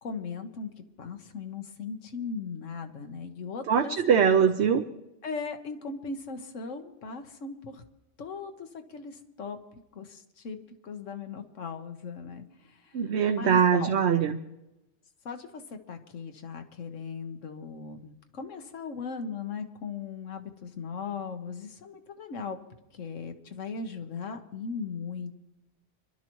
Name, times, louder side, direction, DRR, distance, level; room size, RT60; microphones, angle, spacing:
voice 1, 0.0-0.7 1.0-4.0 5.2-7.8 8.2-9.6 9.9-12.4 13.4-13.9 15.2-22.6 22.9-25.3, left 5 dB, 90° left, 6 dB, 1.5 m, -38 dB
voice 2, 3.7-4.8 12.9-14.4, right 7 dB, 65° right, 5 dB, 1.0 m, -22 dB
26.0 x 12.0 x 3.1 m, 0.94 s
omnidirectional pair, 1.2 m